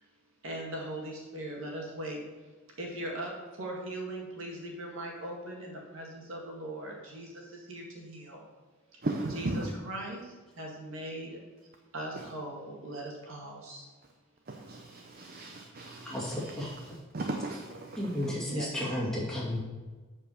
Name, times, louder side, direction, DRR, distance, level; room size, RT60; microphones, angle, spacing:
voice 1, 0.4-2.2 2.8-8.4 8.9-9.0 9.3-11.4 11.9-13.9 18.5-18.9, right 1 dB, 75° right, -1 dB, 2.0 m, -40 dB
voice 2, 9.0-9.7 12.1-12.2 14.5-18.3, right 2 dB, 45° right, 3 dB, 0.7 m, -37 dB
voice 3, 16.0-16.7 18.0-19.6, left 1 dB, 5° left, -6 dB, 2.2 m, -33 dB
8.0 x 4.8 x 6.5 m, 1.3 s
head